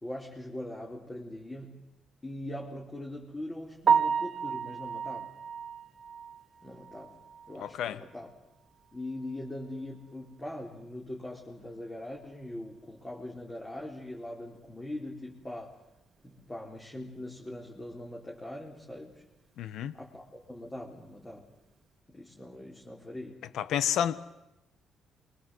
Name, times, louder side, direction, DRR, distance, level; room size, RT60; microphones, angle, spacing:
voice 1, 0.0-1.8 2.2-5.4 6.6-8.3 8.9-15.8 16.2-19.2 19.9-21.4 22.1-23.4, left 1 dB, 20° left, 4.6 m, -41 dB
Piano, 3.8-7.8 8.2-8.3 8.8-8.9 9.2-9.3 12.4-12.5 21.0-21.3, right 7 dB, 50° right, 1.5 m, -31 dB
voice 2, 7.6-8.0 19.6-19.9 23.5-24.2, left 10 dB, 80° left, 1.2 m, -30 dB
28.0 x 24.0 x 8.0 m
cardioid pair, 90°, 0 cm